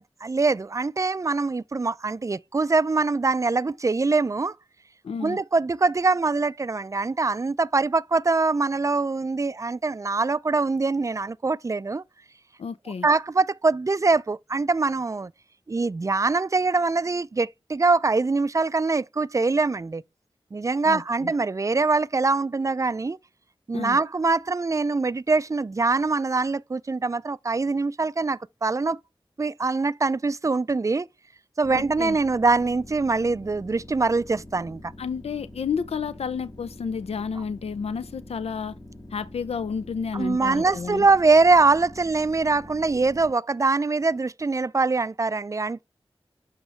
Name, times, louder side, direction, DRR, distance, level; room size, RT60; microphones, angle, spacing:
voice 1, 0.0-4.5 5.2-12.0 13.0-15.3 15.7-20.0 20.5-23.2 23.7-29.0 29.4-31.1 31.6-34.8 40.2-45.8, right 3 dB, 30° right, 0.3 m, -23 dB
voice 2, 5.0-5.4 12.6-13.1 20.8-21.3 23.7-24.0 31.7-32.2 35.0-38.8 39.1-41.1, left 6 dB, 85° left, 0.4 m, -31 dB
sound 1, 31.6-43.3, left 1 dB, 35° left, 1.3 m, -45 dB
7.9 x 2.9 x 4.4 m
cardioid pair, 40°, 10 cm